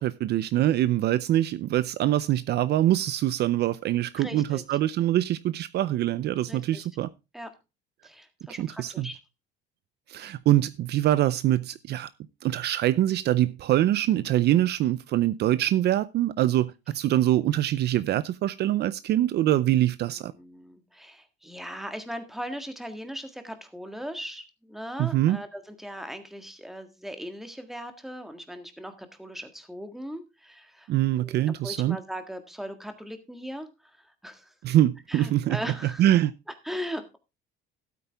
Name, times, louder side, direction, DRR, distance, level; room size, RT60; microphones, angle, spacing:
voice 1, 0.0-7.1 8.6-9.1 10.1-12.1 12.4-20.3 25.0-25.4 30.9-32.0 34.6-35.6 36.0-36.3, right 13 dB, 55° right, 0.5 m, -24 dB
voice 2, 4.1-4.6 6.5-6.9 7.3-7.5 8.0-9.2 20.1-30.9 31.2-34.5 35.1-36.0 36.6-37.2, equal, ahead, 1.7 m, -39 dB
13.0 x 8.5 x 3.4 m
cardioid pair, 130°, 21 cm